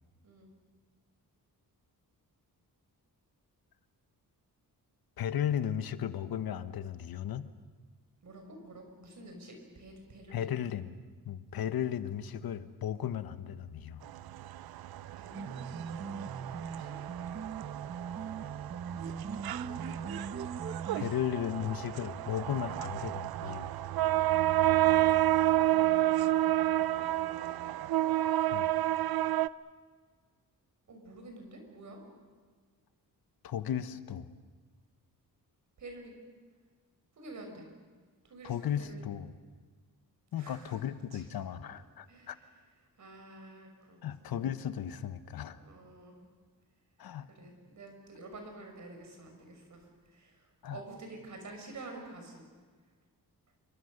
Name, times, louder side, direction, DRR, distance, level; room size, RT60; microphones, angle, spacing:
voice 1, 5.2-7.5 10.3-11.0 11.2-14.0 20.9-23.7 28.5-28.7 33.4-34.3 38.4-39.3 40.3-42.4 44.0-45.6 47.0-47.3 50.6-50.8, left 9 dB, 80° left, 12 dB, 1.2 m, -35 dB
voice 2, 8.2-10.5 15.1-16.9 18.9-19.3 19.6-20.1 25.5-27.6 30.9-32.0 35.8-36.1 37.1-37.7 38.2-39.2 40.4-40.8 41.1-41.2 42.1-42.4 43.0-44.4 45.5-46.2 47.3-52.5, right 2 dB, 55° right, 3 dB, 6.3 m, -49 dB
sound 1, 14.1-29.5, right 14 dB, 85° right, 0.6 m, -30 dB
sound 2, 15.3-21.1, right 5 dB, 40° right, 1.0 m, -40 dB
27.5 x 23.5 x 6.7 m, 1.5 s
wide cardioid pair, 130°, 36 cm